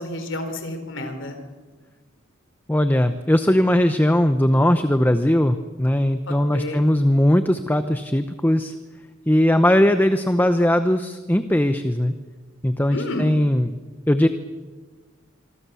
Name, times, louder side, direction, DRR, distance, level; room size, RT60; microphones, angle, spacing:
voice 1, 0.0-1.4 6.3-6.8 12.9-13.3, left 1 dB, 60° left, 6 dB, 4.2 m, -30 dB
voice 2, 2.7-8.7 9.3-12.1 12.6-13.8 14.1-14.3, left 1 dB, 10° left, 9 dB, 0.7 m, -19 dB
26.5 x 24.0 x 7.0 m, 1.4 s
head